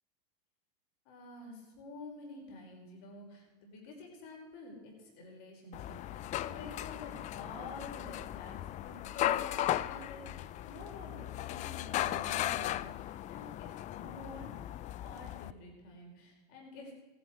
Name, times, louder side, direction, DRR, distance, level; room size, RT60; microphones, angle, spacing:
voice 1, 1.1-16.9, left 2 dB, 60° left, -1 dB, 5.0 m, -49 dB
sound 1, 5.7-15.5, left 13 dB, 35° left, 0.5 m, -37 dB
16.0 x 11.0 x 4.8 m, 1.3 s
hypercardioid pair, 105°, 20 cm